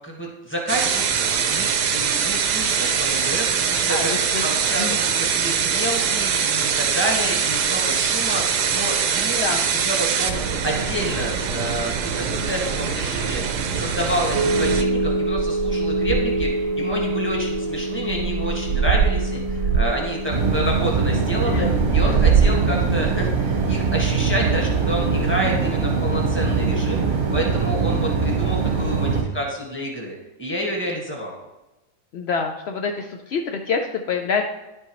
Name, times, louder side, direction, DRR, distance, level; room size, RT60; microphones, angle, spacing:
voice 1, 0.0-21.7 21.9-27.0 27.3-31.3, equal, 10° left, -2 dB, 1.5 m, -29 dB
sound 1, 0.7-14.8, right 7 dB, 85° right, 1.2 m, -23 dB
voice 2, 3.9-4.4 4.8-5.0 9.4-9.7 21.5-21.8 32.1-34.4, left 5 dB, 75° left, 3 dB, 0.5 m, -26 dB
sound 2, 14.3-25.6, right 4 dB, 65° right, 1.0 m, -24 dB
sound 3, 20.3-29.2, right 4 dB, 40° right, 1.0 m, -22 dB
11.0 x 5.4 x 3.1 m, 1.0 s
omnidirectional pair, 1.7 m